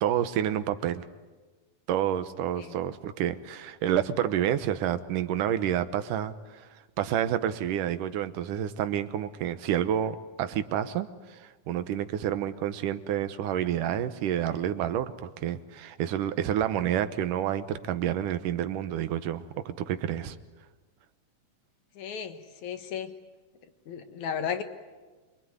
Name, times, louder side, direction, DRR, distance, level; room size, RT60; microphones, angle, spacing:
voice 1, 0.0-1.1 1.9-6.7 7.0-20.4, right 10 dB, 80° right, 11 dB, 2.6 m, -29 dB
voice 2, 22.0-23.1 23.9-24.6, left 7 dB, 65° left, 8 dB, 2.7 m, -34 dB
26.0 x 23.5 x 9.6 m, 1.3 s
omnidirectional pair, 3.7 m